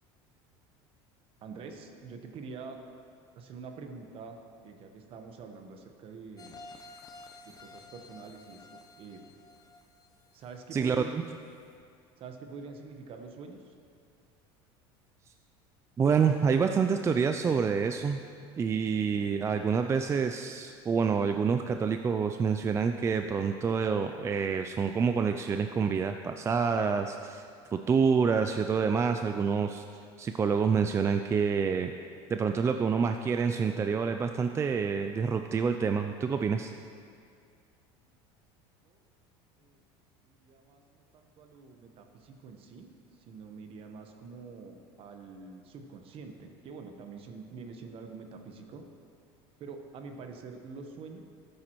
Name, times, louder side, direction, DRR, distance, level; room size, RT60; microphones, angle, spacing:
voice 1, 1.4-2.8 3.3-4.4 4.6-6.6 7.4-8.7 9.0-9.2 10.3-11.3 12.2-13.7 38.1-38.2 38.8-39.0 39.6-39.8 40.3-48.8 49.6-51.2, right 4 dB, 45° right, 5 dB, 1.1 m, -46 dB
sound 1, 6.4-11.1 11.5-11.6, left 3 dB, 30° left, 0.8 m, -52 dB
voice 2, 10.7-11.2 16.0-18.2 18.6-27.4 27.7-29.8 30.2-31.9 32.3-36.7, right 6 dB, 20° right, 6 dB, 0.3 m, -27 dB
13.0 x 9.5 x 3.1 m, 2.3 s
supercardioid pair, 115°, 13 cm